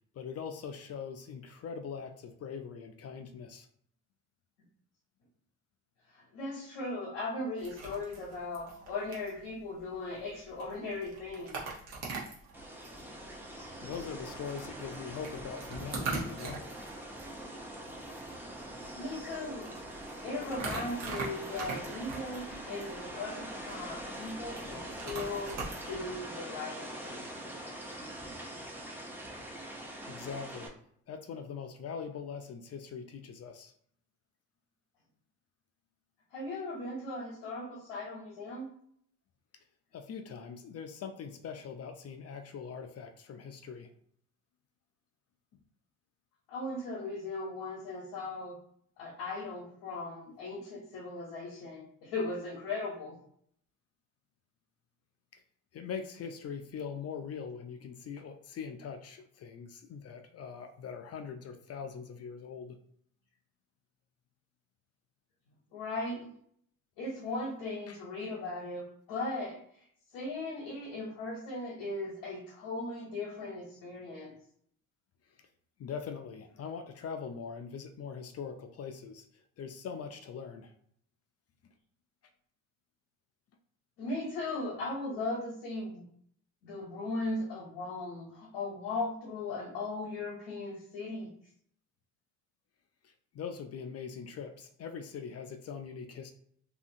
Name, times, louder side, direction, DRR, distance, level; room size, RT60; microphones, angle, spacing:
voice 1, 0.1-3.7 13.8-16.7 30.1-30.7 31.1-33.7 39.9-43.9 55.7-62.8 67.9-68.0 75.8-80.7 93.0-96.3, left 6 dB, 45° left, 7 dB, 0.4 m, -42 dB
voice 2, 6.1-11.6 18.6-25.6 25.9-27.4 36.3-38.7 46.5-48.6 49.0-53.2 65.7-66.3 67.0-69.9 70.1-74.3 84.0-86.0 86.6-91.3, left 2 dB, 85° left, -2 dB, 0.9 m, -38 dB
sound 1, 7.6-26.2, right 3 dB, 85° right, 1.0 m, -43 dB
sound 2, 12.5-30.7, right 1 dB, 5° right, 0.6 m, -43 dB
2.7 x 2.5 x 2.7 m, 0.65 s
supercardioid pair, 65°, 36 cm